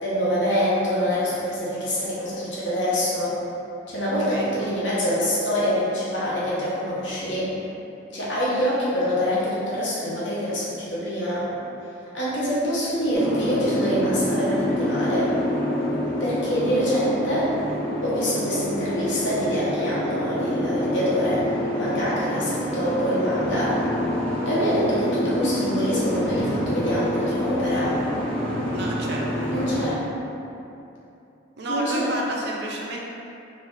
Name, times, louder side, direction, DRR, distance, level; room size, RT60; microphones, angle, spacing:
voice 1, 0.0-3.4 3.9-7.5 8.1-11.5 12.1-15.3 16.2-17.5 18.0-23.8 24.5-28.0 29.5-30.0 31.7-32.1, equal, 65° left, -9 dB, 1.0 m, -25 dB
voice 2, 4.3-4.6 28.7-29.2 31.6-33.0, right 1 dB, 60° right, -2 dB, 0.5 m, -30 dB
Boat Water vehicle, 13.1-29.9, left 1 dB, 5° left, 0.5 m, -27 dB
3.1 x 2.4 x 3.8 m, 2.8 s
head